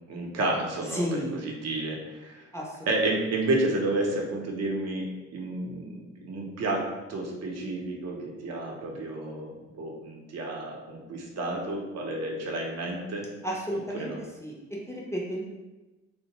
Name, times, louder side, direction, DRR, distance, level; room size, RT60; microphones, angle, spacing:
voice 1, 0.1-2.5 2.9-13.3 13.9-14.2, right 2 dB, 55° right, -1 dB, 0.7 m, -31 dB
voice 2, 0.9-1.4 2.5-2.6 13.4-14.1 14.4-14.5 14.9-15.4, equal, 10° left, -3 dB, 0.5 m, -31 dB
2.6 x 2.0 x 2.9 m, 1.1 s
cardioid pair, 90°, 30 cm